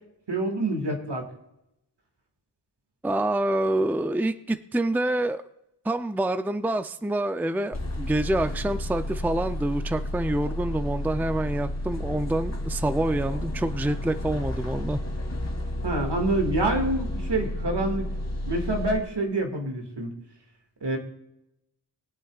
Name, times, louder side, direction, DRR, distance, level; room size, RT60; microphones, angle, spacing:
voice 1, 0.3-1.3 15.8-18.1 18.5-20.1 20.8-21.0, right 2 dB, 70° right, 2 dB, 2.2 m, -27 dB
voice 2, 3.0-5.4 5.8-15.0, right 1 dB, 5° right, 10 dB, 0.5 m, -27 dB
sound 1, 7.7-19.0, left 1 dB, 35° left, 2.0 m, -31 dB
22.5 x 8.2 x 2.4 m, 0.85 s
wide cardioid pair, 70°, 43 cm